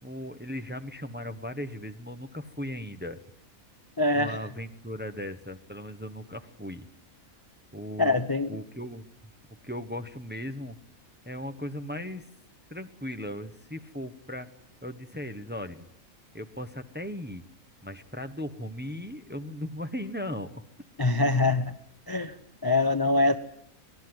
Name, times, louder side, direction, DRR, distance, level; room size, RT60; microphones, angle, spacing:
voice 1, 0.0-3.2 4.1-6.9 7.7-9.1 9.6-10.8 11.2-12.3 12.7-14.5 14.8-15.9 16.3-17.4 17.8-20.6, left 1 dB, 10° right, 7 dB, 1.0 m, -37 dB
voice 2, 4.0-4.4 8.0-8.5 21.0-21.7 22.1-22.3 22.6-23.4, left 2 dB, 20° left, 10 dB, 0.8 m, -24 dB
25.5 x 18.5 x 7.9 m, 0.69 s
omnidirectional pair, 1.5 m